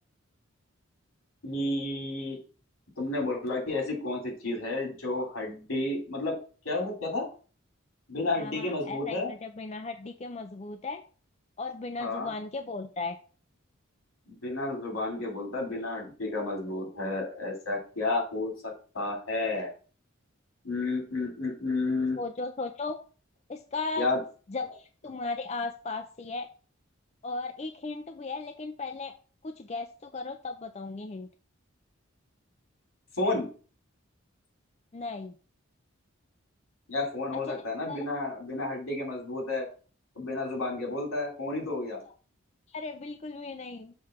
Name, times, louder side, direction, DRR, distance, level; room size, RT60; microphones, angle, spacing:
voice 1, 1.4-2.4 3.0-6.3 6.6-7.3 8.1-9.3 12.0-12.3 14.3-19.7 20.6-22.2 24.0-24.2 33.2-33.5 36.9-39.7 40.1-42.0, left 2 dB, 85° left, 0 dB, 3.0 m, -31 dB
voice 2, 8.4-11.0 11.6-13.2 22.2-23.0 23.5-24.1 24.5-26.5 27.2-29.1 29.4-31.3 34.9-35.3 37.5-37.6 37.9-38.0 42.7-43.9, left 3 dB, 30° left, 6 dB, 0.4 m, -36 dB
6.7 x 3.2 x 5.8 m, 0.38 s
head